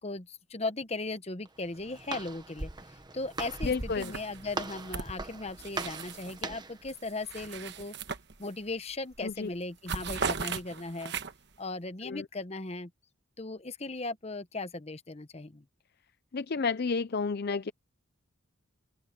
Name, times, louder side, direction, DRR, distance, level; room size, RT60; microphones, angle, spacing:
voice 1, 0.0-7.9 8.4-11.1 11.6-12.9 13.4-15.6, left 2 dB, 30° left, 0.9 m, -37 dB
Walk footsteps, 1.5-6.8, right 2 dB, 20° right, 1.1 m, -40 dB
sound 1, 3.4-3.7 4.0-6.4 6.8-8.7 9.1-9.3 9.6-11.6, right 5 dB, 50° right, 1.2 m, -38 dB
voice 2, 3.6-4.1 9.2-9.5 12.0-12.3 16.3-17.7, left 4 dB, 45° left, 0.5 m, -31 dB
open air
head